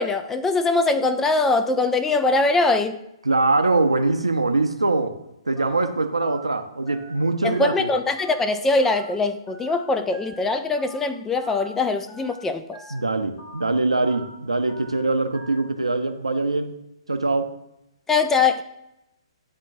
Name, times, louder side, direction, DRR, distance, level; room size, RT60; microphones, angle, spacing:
voice 1, 0.0-3.0 7.4-12.8 18.1-18.6, left 3 dB, 10° left, 0.3 m, -22 dB
voice 2, 3.2-5.2 5.5-7.9 12.9-16.7 17.1-17.5, right 2 dB, 85° right, 0.6 m, -23 dB
Telephone, 5.6-5.8 6.2-6.4 6.9-7.1 7.5-7.8 8.2-8.4 8.8-9.1 9.5-9.7 10.1-10.4 10.8-11.0 11.4-11.7 12.1-12.3 12.7-13.0 13.4-13.6 14.0-14.3 14.7-14.9 15.3-15.6, right 2 dB, 40° left, 2.2 m, -43 dB
10.5 x 3.6 x 2.6 m
figure-of-eight pair, 125°, 3 cm